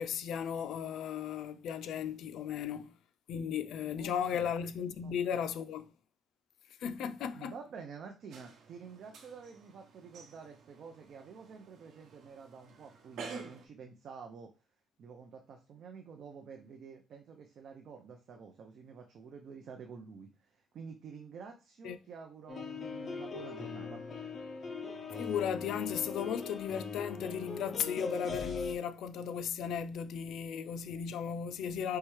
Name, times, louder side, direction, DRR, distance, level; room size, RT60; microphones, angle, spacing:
voice 1, 0.0-2.9 3.3-5.9 6.8-7.5 21.8-22.0 25.2-32.0, left 8 dB, 80° left, 0.4 m, -36 dB
voice 2, 4.0-4.5 5.0-5.4 7.3-14.5 15.0-24.0, right 5 dB, 60° right, 0.6 m, -49 dB
sound 1, 8.3-13.7, right 5 dB, 80° right, 1.0 m, -50 dB
sound 2, 22.5-28.7, left 4 dB, 40° left, 0.8 m, -40 dB
4.6 x 3.2 x 3.1 m
cardioid pair, 130°, 0 cm